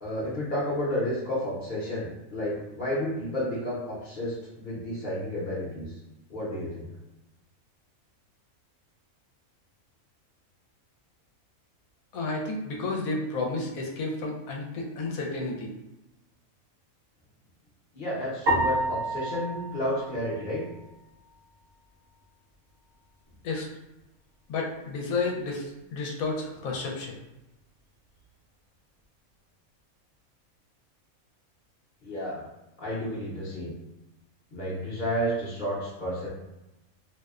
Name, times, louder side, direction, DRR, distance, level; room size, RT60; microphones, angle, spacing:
voice 1, 0.0-5.9 6.3-6.9 17.9-20.6 32.0-32.5 32.8-33.7 34.5-36.3, equal, 45° left, -7 dB, 0.7 m, -31 dB
voice 2, 12.1-15.7 23.4-23.7 24.5-27.2, left 3 dB, 80° left, 0 dB, 1.0 m, -31 dB
sound 1, 18.5-20.9, right 1 dB, 50° right, 0.8 m, -29 dB
2.7 x 2.0 x 2.3 m, 0.96 s
omnidirectional pair, 1.5 m